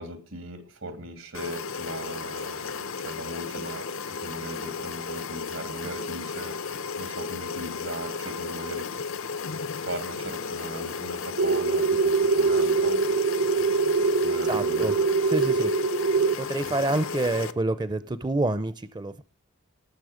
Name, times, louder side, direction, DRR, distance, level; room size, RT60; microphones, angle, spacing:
voice 1, 0.0-8.9 9.7-13.0 14.2-15.0, right 1 dB, 85° right, 8 dB, 2.7 m, -38 dB
sound 1, 1.3-17.5, left 5 dB, 80° left, 0.8 m, -34 dB
sound 2, 11.4-16.4, right 4 dB, 65° right, 0.6 m, -23 dB
voice 2, 14.5-14.9 15.3-15.7 16.4-19.2, right 2 dB, 20° right, 14 dB, 0.5 m, -27 dB
18.5 x 7.4 x 5.0 m, 0.32 s
head